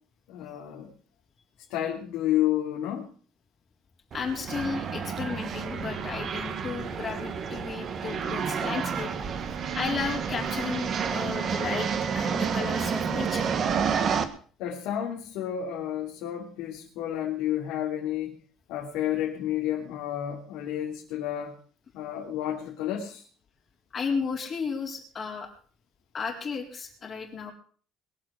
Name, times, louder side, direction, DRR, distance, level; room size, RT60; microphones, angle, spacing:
voice 1, 0.3-0.9 1.7-3.1 14.6-18.3 18.7-21.5 21.9-23.2, left 11 dB, 80° left, -2 dB, 2.9 m, -30 dB
voice 2, 4.1-9.2 9.7-13.5 23.9-25.5 26.1-27.5, left 5 dB, 30° left, 0 dB, 4.1 m, -34 dB
sound 1, 4.1-14.2, right 6 dB, 35° right, 1.5 m, -30 dB
22.0 x 7.6 x 6.3 m, 0.44 s
cardioid pair, 160°, 0 cm